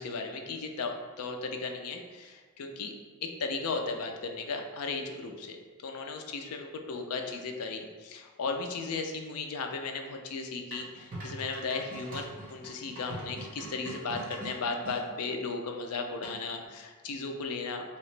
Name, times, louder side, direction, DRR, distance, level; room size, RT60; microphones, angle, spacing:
voice 1, 0.0-2.9 3.2-5.6 5.8-17.8, left 4 dB, 80° left, 4 dB, 0.4 m, -36 dB
sound 1, 10.7-15.0 16.2-16.6, right 1 dB, 40° right, 1.1 m, -43 dB
2.9 x 2.8 x 3.2 m, 1.4 s
head